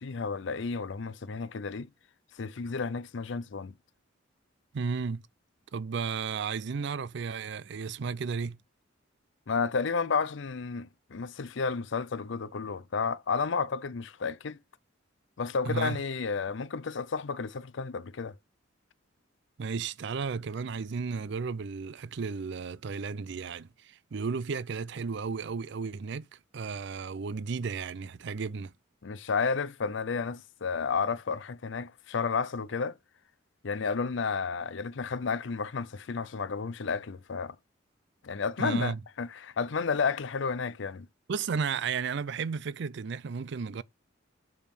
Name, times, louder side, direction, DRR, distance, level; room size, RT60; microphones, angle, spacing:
voice 1, 0.0-1.9 2.4-3.7 9.5-14.6 15.4-18.3 29.0-32.9 33.6-37.6 38.2-41.1, left 5 dB, 65° left, 0.5 m, -32 dB
voice 2, 4.7-5.2 5.7-8.6 15.7-16.0 19.6-26.3 26.5-28.7 38.6-39.0 41.3-43.8, right 5 dB, 60° right, 0.4 m, -33 dB
7.0 x 5.2 x 4.4 m
head